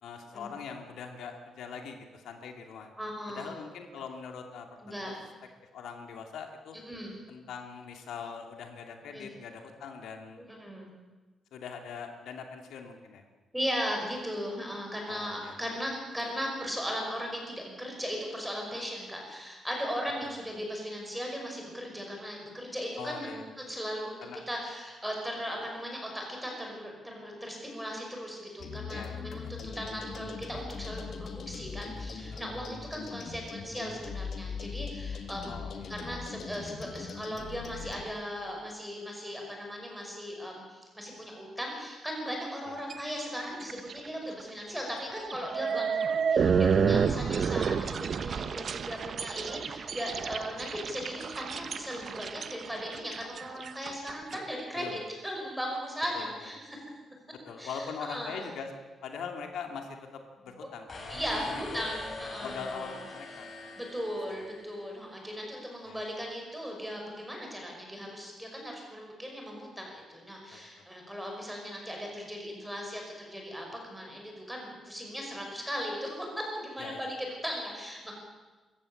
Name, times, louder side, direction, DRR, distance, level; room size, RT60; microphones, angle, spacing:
voice 1, 0.0-2.9 3.3-5.0 5.7-6.8 7.3-10.4 11.5-13.2 15.1-15.6 20.2-20.3 23.0-23.4 24.2-24.4 28.9-29.5 32.3-32.4 35.5-35.9 42.7-42.8 50.5-50.6 54.7-55.0 56.1-56.3 57.5-58.7 59.0-61.1 61.3-61.8 62.4-63.7 65.9-66.0 70.5-70.9 76.8-77.0, left 6 dB, 85° left, 4 dB, 2.7 m, -42 dB
voice 2, 3.0-3.5 4.8-5.2 6.9-7.1 9.1-9.3 10.5-10.9 13.5-24.2 24.5-56.8 57.6-58.4 61.1-62.8 63.8-78.2, equal, 5° right, 0 dB, 5.5 m, -37 dB
sound 1, 28.6-38.0, left 5 dB, 50° left, 2.0 m, -40 dB
sound 2, 42.9-43.2 43.6-44.0 44.4-44.5 45.3-54.4, right 6 dB, 40° right, 0.8 m, -30 dB
sound 3, 60.9-65.1, left 2 dB, 30° left, 4.7 m, -44 dB
24.0 x 15.0 x 8.6 m, 1.2 s
wide cardioid pair, 170°, 0 cm